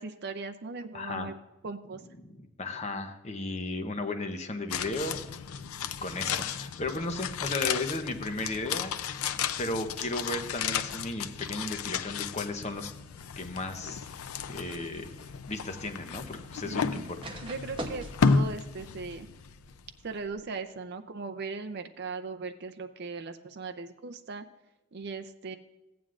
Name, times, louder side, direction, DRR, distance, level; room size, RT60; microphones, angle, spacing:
voice 1, 0.0-1.3 1.6-2.0 16.6-17.1 17.4-19.3 20.0-24.4 24.9-25.6, right 4 dB, 50° right, 7 dB, 0.5 m, -38 dB
voice 2, 0.9-1.3 2.2-5.2 5.8-8.9 9.6-12.9 13.4-14.1 14.5-15.1 15.5-17.2, left 2 dB, 30° left, 6 dB, 0.8 m, -35 dB
sound 1, 4.7-19.9 20.2-20.3, left 6 dB, 90° left, 0.5 m, -33 dB
sound 2, 13.2-20.4, right 1 dB, 25° right, 0.9 m, -47 dB
15.0 x 9.3 x 2.5 m, 1.1 s
head